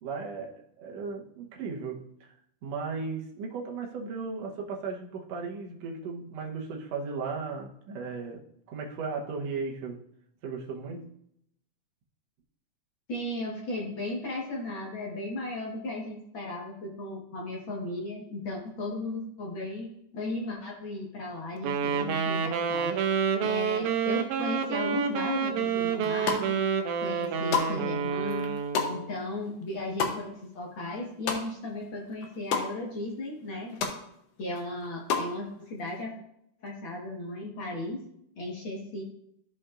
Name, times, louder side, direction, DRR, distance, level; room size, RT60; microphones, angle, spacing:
voice 1, 0.0-2.3 2.6-10.0 10.4-11.1, right 4 dB, 65° right, 0 dB, 2.0 m, -36 dB
voice 2, 13.1-23.0 23.4-26.6 27.0-28.5 28.9-33.8 34.4-36.2 36.6-38.0 38.4-39.0, left 2 dB, 50° left, -2 dB, 1.8 m, -36 dB
Wind instrument woodwind instrument, 21.6-29.1, right 7 dB, 85° right, 2.1 m, -28 dB
sound 1, 26.0-26.7 27.1-31.8 32.1-32.7 33.1-33.2 33.4-34.0 34.4-35.3, left 6 dB, 70° left, 1.7 m, -31 dB
13.0 x 5.2 x 2.5 m, 0.74 s
omnidirectional pair, 3.6 m